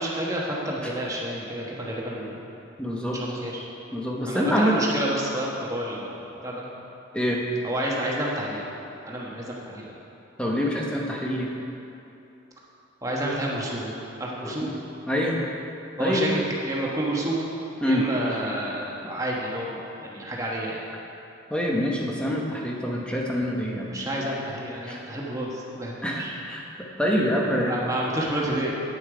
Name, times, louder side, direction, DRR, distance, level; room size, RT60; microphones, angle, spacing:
voice 1, 0.0-2.4 3.1-3.7 4.3-6.6 7.6-8.7 9.0-10.0 13.0-13.9 14.2-14.7 15.9-17.5 17.8-20.8 23.8-26.3 27.6-28.7, right 1 dB, 15° right, -4 dB, 1.2 m, -29 dB
voice 2, 2.8-3.2 3.9-4.8 7.1-7.4 10.4-11.5 14.4-14.7 15.1-15.4 16.0-16.2 17.8-18.0 21.5-23.9 24.8-25.0 26.0-26.6 27.0-27.7, equal, 5° left, -2 dB, 0.9 m, -25 dB
8.5 x 8.2 x 5.0 m, 2.9 s
head